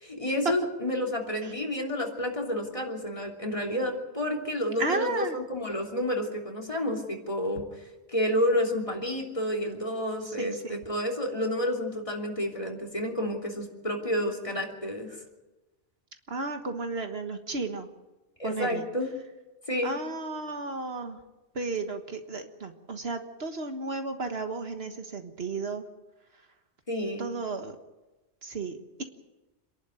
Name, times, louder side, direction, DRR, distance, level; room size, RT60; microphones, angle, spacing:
voice 1, 0.0-7.6 8.1-15.2 18.4-19.1 19.7-19.9 26.9-27.2, left 1 dB, 30° left, 2 dB, 3.2 m, -30 dB
voice 2, 4.8-5.4 10.2-10.8 16.3-17.9 18.4-18.9 19.8-21.2 21.5-25.8 27.2-27.7 28.4-29.0, right 3 dB, 65° right, 6 dB, 1.6 m, -33 dB
26.5 x 11.5 x 9.3 m, 1.1 s
omnidirectional pair, 1.2 m